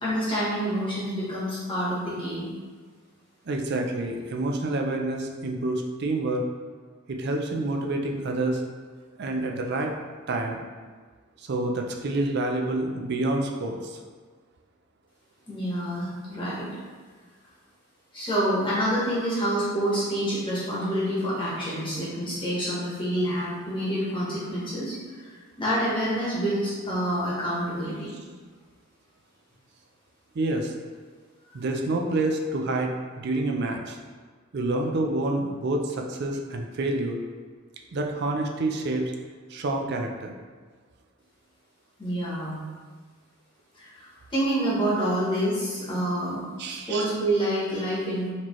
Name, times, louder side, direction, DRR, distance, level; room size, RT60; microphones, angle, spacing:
voice 1, 0.0-2.5 15.5-16.7 18.1-28.1 42.0-42.6 43.7-48.3, right 1 dB, 25° left, -8 dB, 1.1 m, -27 dB
voice 2, 3.5-6.4 7.1-8.6 9.2-9.9 10.3-10.6 11.4-14.0 30.3-30.7 31.5-34.0 34.5-37.2 37.9-39.1 39.5-40.4 46.6-47.1, right 2 dB, 55° right, 2 dB, 0.4 m, -28 dB
4.2 x 2.9 x 3.0 m, 1.5 s
head